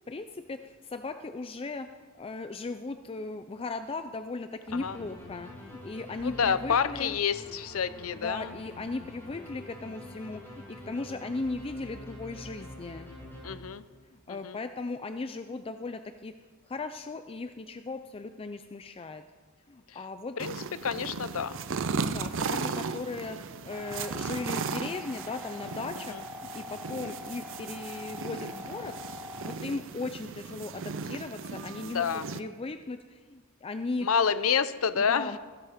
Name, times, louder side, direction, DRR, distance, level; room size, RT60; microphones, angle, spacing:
voice 1, 0.1-7.2 8.2-13.1 14.3-16.3 16.7-19.2 19.7-20.4 22.0-26.1 26.5-28.9 29.4-32.0 32.3-34.1 34.9-35.4, left 3 dB, 25° left, 9 dB, 0.5 m, -37 dB
sound 1, 4.7-14.0, left 1 dB, 10° left, 4.9 m, -46 dB
voice 2, 6.2-8.5 13.4-13.8 14.3-14.6 19.9-20.0 20.4-20.6 20.8-21.6 26.0-26.2 31.8-32.3 34.0-35.4, left 6 dB, 75° left, 14 dB, 0.6 m, -29 dB
sound 2, 20.4-32.4, right 5 dB, 65° right, 0.6 m, -36 dB
sound 3, 23.7-29.6, left 3 dB, 10° right, 1.2 m, -43 dB
15.5 x 11.0 x 5.1 m, 1.4 s
head